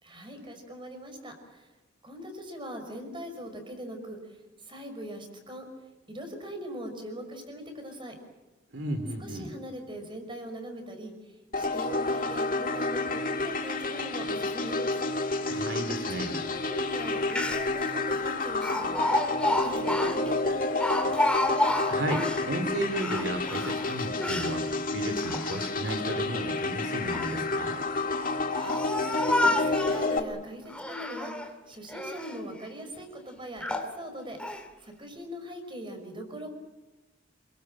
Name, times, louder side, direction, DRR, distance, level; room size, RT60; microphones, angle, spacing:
voice 1, 0.0-1.7 2.0-5.6 6.1-8.2 9.2-15.0 16.3-16.4 16.6-21.2 28.5-36.5, equal, 25° right, 6 dB, 5.6 m, -41 dB
voice 2, 8.7-9.5 15.5-16.4 21.9-24.6 24.9-27.8, right 1 dB, 70° right, 7 dB, 2.9 m, -33 dB
sound 1, 11.5-30.2, left 3 dB, 50° left, 2.1 m, -30 dB
Speech, 17.0-17.1 17.3-17.8 18.6-22.5 22.9-24.6 25.1-25.9 26.8-27.4 28.1-30.1 30.7-31.5 31.9-32.4 33.0-33.1 33.6-33.9 34.4-34.6, left 1 dB, 5° left, 2.3 m, -30 dB
28.0 x 22.5 x 7.7 m, 1.1 s
head